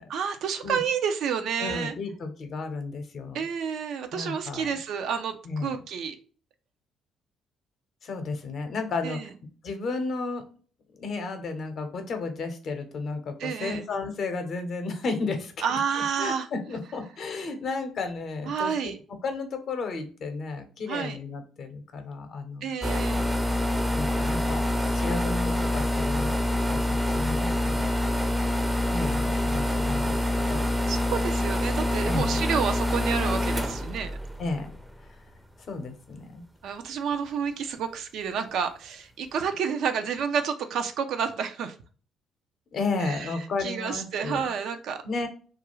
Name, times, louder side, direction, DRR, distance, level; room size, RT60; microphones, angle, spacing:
voice 1, 0.1-1.9 3.3-6.2 9.0-9.3 13.4-13.8 15.6-16.5 18.4-19.0 20.9-21.2 22.6-23.2 30.9-34.1 36.6-41.7 43.0-43.3 43.6-45.0, right 7 dB, 65° right, 7 dB, 0.4 m, -30 dB
voice 2, 1.6-3.4 4.1-4.8 5.4-5.8 8.0-9.3 9.6-10.5 11.0-15.5 16.2-18.9 19.2-22.7 23.9-28.1 28.9-30.6 32.0-32.4 34.4-34.7 35.7-36.4 42.7-44.4 45.0-45.3, left 3 dB, 55° left, 6 dB, 0.7 m, -33 dB
sound 1, 22.8-35.2, left 1 dB, 10° right, 0.5 m, -26 dB
2.3 x 2.2 x 3.0 m, 0.40 s
hypercardioid pair, 50°, 0 cm